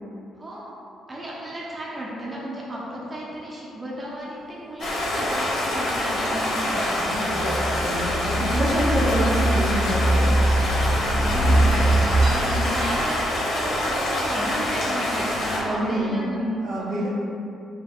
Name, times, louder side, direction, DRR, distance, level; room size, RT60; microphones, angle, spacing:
voice 1, 0.4-0.7 1.1-7.5 11.3-16.5 16.8-17.1, right 1 dB, 20° right, -6 dB, 0.8 m, -33 dB
Stream, 4.8-15.6, left 1 dB, 80° left, 1.0 m, -26 dB
sound 1, 5.7-9.4 9.6-9.7 9.9-10.6 11.3-14.8 15.2-15.4, right 1 dB, 60° right, 1.0 m, -40 dB
sound 2, 7.3-12.3, right 1 dB, 15° left, 0.6 m, -22 dB
voice 2, 7.8-10.3 15.6-16.1 16.6-17.1, right 1 dB, 85° right, -9 dB, 1.5 m, -26 dB
4.5 x 2.2 x 4.4 m, 2.7 s
cardioid pair, 90°, 0 cm